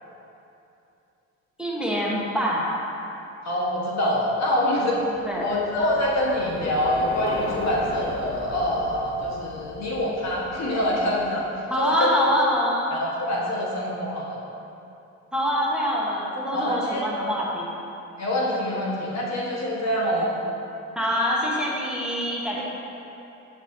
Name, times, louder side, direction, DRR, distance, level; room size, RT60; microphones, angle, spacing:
voice 1, 1.6-2.8 5.2-5.5 11.7-12.9 15.3-17.7 21.0-22.6, equal, 5° right, -5 dB, 1.1 m, -25 dB
voice 2, 3.4-11.4 11.8-12.1 12.9-14.4 16.5-17.0 18.2-20.4, left 1 dB, 60° left, -4 dB, 1.3 m, -25 dB
Bicycle, 4.9-11.5, left 2 dB, 30° left, 0.8 m, -38 dB
7.9 x 6.0 x 2.7 m, 2.8 s
cardioid pair, 90°, 30 cm